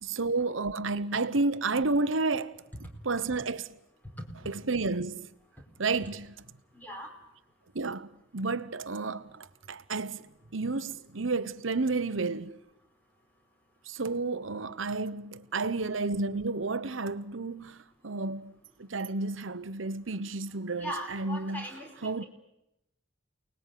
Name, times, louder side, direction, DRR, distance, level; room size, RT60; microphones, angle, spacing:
voice 1, 0.0-2.6 3.0-3.7 4.4-5.3 5.8-6.3 7.7-10.3 10.5-12.6 13.9-21.7 22.0-22.2, right 3 dB, 85° right, 1.1 m, -31 dB
voice 2, 4.0-4.3 6.7-7.2 20.8-22.2, equal, 10° left, 4.5 m, -40 dB
29.0 x 20.0 x 9.4 m
head